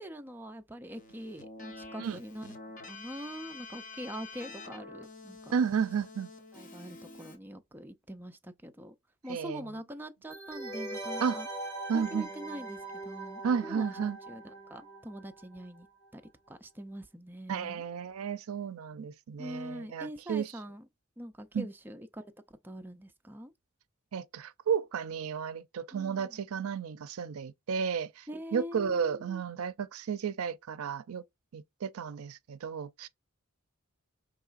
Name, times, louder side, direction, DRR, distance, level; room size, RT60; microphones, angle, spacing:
voice 1, 0.0-2.5 2.9-5.6 6.5-8.9 9.2-11.5 11.9-15.9 16.1-16.2 16.5-17.8 19.4-20.9 21.2-23.5 25.9-26.4 28.3-29.4, equal, 10° right, 0.4 m, -43 dB
Keyboard (musical), 0.9-7.4, left 3 dB, 40° left, 1.0 m, -47 dB
voice 2, 5.5-6.3 9.3-9.6 11.2-11.4 11.9-12.3 13.4-14.2 17.5-20.5 21.5-21.7 24.1-28.3 28.5-31.2 31.5-33.1, right 6 dB, 85° right, 0.4 m, -33 dB
sound 1, 10.3-15.8 16.0-16.1, right 2 dB, 10° left, 1.5 m, -41 dB
4.7 x 3.1 x 2.4 m
head